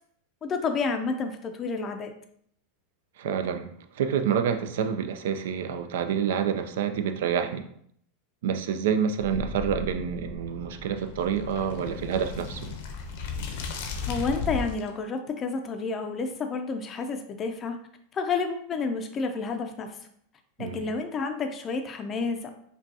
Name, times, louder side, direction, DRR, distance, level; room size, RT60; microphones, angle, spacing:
voice 1, 0.4-2.1 14.1-17.8 18.1-20.0 20.6-22.5, left 4 dB, 25° left, 6 dB, 0.4 m, -30 dB
voice 2, 3.2-7.7 8.4-12.7 20.6-20.9, right 7 dB, 80° right, 8 dB, 0.4 m, -28 dB
sound 1, 9.2-14.9, left 5 dB, 65° left, 0.6 m, -35 dB
5.1 x 2.3 x 2.7 m, 0.66 s
supercardioid pair, 145°, 0 cm